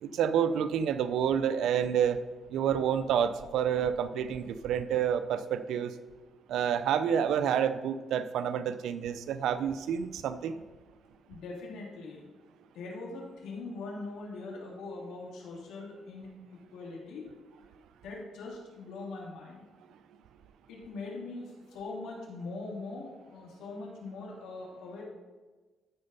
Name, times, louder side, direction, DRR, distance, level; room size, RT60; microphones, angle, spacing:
voice 1, 0.0-2.2 2.5-5.9 6.5-10.6, right 8 dB, 80° right, 12 dB, 0.5 m, -29 dB
voice 2, 11.3-12.3 12.7-17.3 18.0-19.6 20.7-25.0, left 3 dB, 85° left, -2 dB, 2.6 m, -42 dB
13.0 x 4.4 x 5.5 m, 1.3 s
cardioid pair, 90°, 0 cm